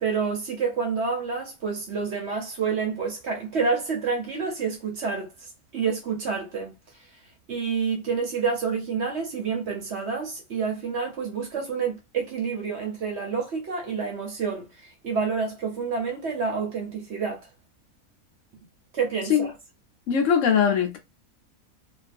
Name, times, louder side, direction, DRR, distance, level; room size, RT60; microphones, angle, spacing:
voice 1, 0.0-5.3 5.7-6.7 7.5-14.7 15.0-17.4 18.9-19.5, right 5 dB, 60° right, 0.9 m, -28 dB
voice 2, 20.1-21.0, left 7 dB, 70° left, 0.9 m, -21 dB
2.5 x 2.4 x 2.4 m
omnidirectional pair, 1.5 m